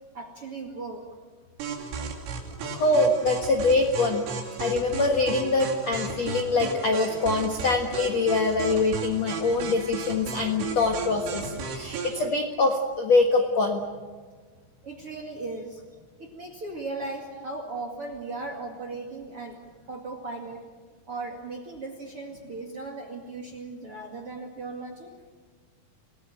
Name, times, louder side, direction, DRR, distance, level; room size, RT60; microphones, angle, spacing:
voice 1, 0.1-1.0 14.8-15.8 16.2-19.6 19.9-20.6 21.1-25.1, right 3 dB, 45° right, 4 dB, 2.1 m, -37 dB
sound 1, 1.6-12.2, right 4 dB, 80° right, 5.4 m, -35 dB
voice 2, 2.7-4.2 4.6-13.8, left 3 dB, 60° left, 3 dB, 1.8 m, -24 dB
28.0 x 18.0 x 9.0 m, 1.5 s
omnidirectional pair, 5.6 m